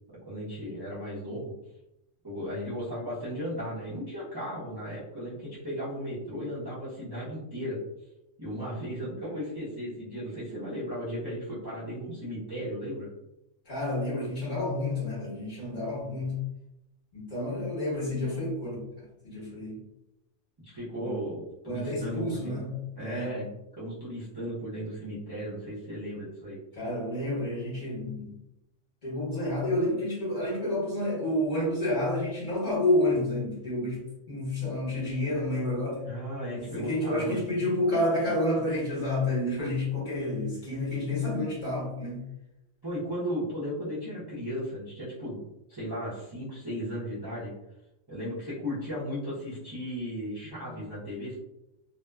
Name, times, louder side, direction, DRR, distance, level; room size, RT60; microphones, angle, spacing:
voice 1, 0.1-1.5 2.2-7.8 8.4-13.1 15.6-15.8 20.6-22.5 23.0-23.5 23.8-26.6 36.0-37.4 42.8-45.4 45.7-47.5 48.1-51.4, equal, 25° right, -10 dB, 0.6 m, -36 dB
voice 2, 13.7-16.4 17.1-18.8 19.2-19.8 21.0-21.1 21.6-23.3 26.7-28.3 29.0-34.0 34.3-36.0 36.6-42.2 50.7-50.8, left 1 dB, 40° left, -7 dB, 1.1 m, -29 dB
2.8 x 2.1 x 2.2 m, 0.89 s
omnidirectional pair, 1.3 m